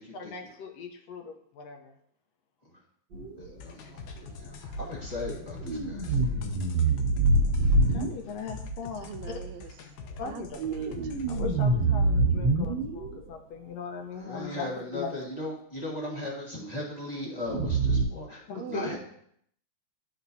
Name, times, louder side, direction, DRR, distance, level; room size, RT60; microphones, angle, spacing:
voice 1, 0.1-1.9 7.7-9.4 10.2-10.6 11.3-15.3 18.5-19.0, left 5 dB, 70° left, 4 dB, 1.8 m, -39 dB
sound 1, 3.1-3.5 5.6-8.1 10.7-13.2 17.5-18.0, right 2 dB, 45° right, 1.8 m, -25 dB
voice 2, 3.4-4.5 4.8-6.1 14.2-18.4 18.7-19.0, left 2 dB, 25° left, -4 dB, 0.9 m, -37 dB
sound 2, 3.6-11.4, left 1 dB, 90° left, 2.2 m, -42 dB
voice 3, 9.0-9.7 10.2-11.0 18.6-19.0, right 8 dB, 80° right, 8 dB, 1.7 m, -37 dB
12.5 x 4.4 x 2.7 m, 0.68 s
omnidirectional pair, 3.3 m